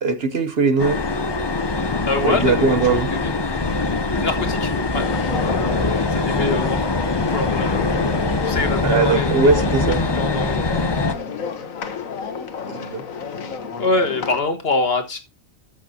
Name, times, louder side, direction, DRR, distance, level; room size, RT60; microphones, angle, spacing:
voice 1, 0.0-1.0 2.2-3.1 8.8-10.0 12.7-13.0, right 4 dB, 55° right, 1.0 m, -20 dB
sound 1, 0.8-11.1, left 3 dB, 30° left, 0.5 m, -23 dB
voice 2, 2.1-3.3 4.1-5.0 6.1-6.9 7.3-7.9 8.4-9.8 10.1-10.8 12.7-12.9 13.8-15.2, left 3 dB, 50° left, 1.5 m, -25 dB
sound 2, 4.9-14.4, left 6 dB, 85° left, 1.6 m, -31 dB
13.5 x 6.4 x 2.8 m
omnidirectional pair, 1.4 m